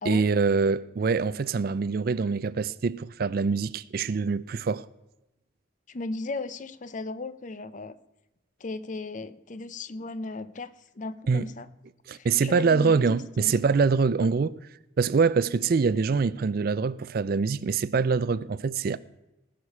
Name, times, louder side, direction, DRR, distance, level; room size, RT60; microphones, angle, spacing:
voice 1, 0.1-4.9 11.3-11.5 12.1-14.5 15.0-19.0, right 5 dB, 50° right, 0.4 m, -24 dB
voice 2, 5.9-8.0 8.6-11.7 12.1-13.5, left 3 dB, 40° left, 0.5 m, -36 dB
19.5 x 6.5 x 5.5 m
head